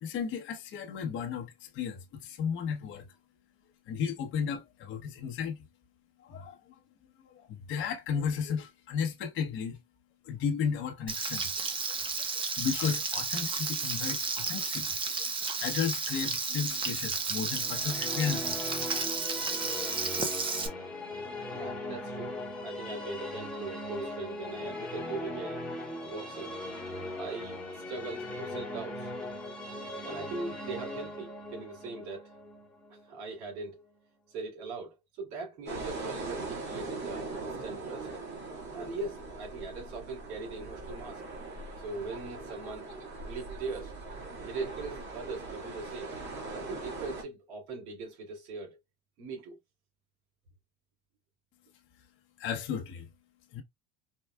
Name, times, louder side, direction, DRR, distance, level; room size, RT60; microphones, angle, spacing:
voice 1, 0.0-3.1 3.9-5.6 6.2-6.7 7.2-9.8 10.2-15.3 15.6-18.7 52.4-53.1 53.5-53.6, left 7 dB, 40° left, 0.9 m, -34 dB
Frying (food), 11.1-20.7, right 4 dB, 15° right, 0.5 m, -32 dB
sound 1, 17.5-33.6, left 1 dB, 5° left, 1.1 m, -39 dB
voice 2, 21.5-22.4 22.6-25.7 26.0-26.5 27.2-29.1 30.0-32.4 32.9-33.8 34.3-38.1 38.7-41.2 41.8-42.9 43.2-43.9 44.5-46.1 46.5-48.8 49.2-49.6, right 3 dB, 70° right, 2.4 m, -40 dB
sound 2, 35.7-47.2, right 3 dB, 35° right, 1.7 m, -41 dB
4.4 x 2.3 x 2.3 m
supercardioid pair, 140°, 30 cm